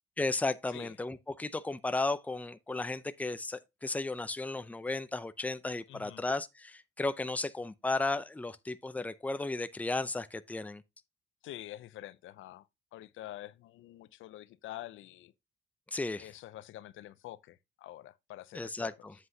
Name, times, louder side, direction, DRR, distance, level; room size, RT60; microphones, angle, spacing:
voice 1, 0.2-10.8 15.9-16.3 18.5-19.1, left 2 dB, 5° left, 0.5 m, -34 dB
voice 2, 5.9-6.2 11.4-15.3 16.2-19.1, left 14 dB, 80° left, 0.6 m, -47 dB
7.9 x 7.8 x 2.8 m
cardioid pair, 90°, 20 cm